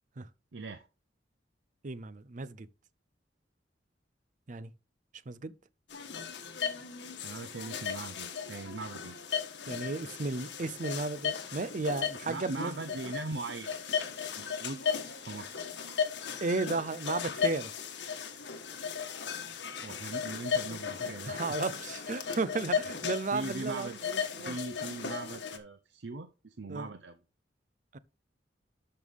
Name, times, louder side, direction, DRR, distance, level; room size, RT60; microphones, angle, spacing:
voice 1, 0.5-0.9 7.2-9.2 12.3-13.8 14.4-14.8 15.2-15.7 19.8-21.6 23.0-24.0 24.5-27.2, right 3 dB, 80° right, 0.7 m, -40 dB
voice 2, 1.8-2.7 4.5-4.7 5.3-5.5 9.7-12.7 16.4-17.7 21.0-24.6 26.7-26.9 27.9-28.0, right 3 dB, 45° right, 0.6 m, -34 dB
sound 1, 5.9-25.6, left 6 dB, 85° left, 1.5 m, -36 dB
12.5 x 5.5 x 3.6 m
head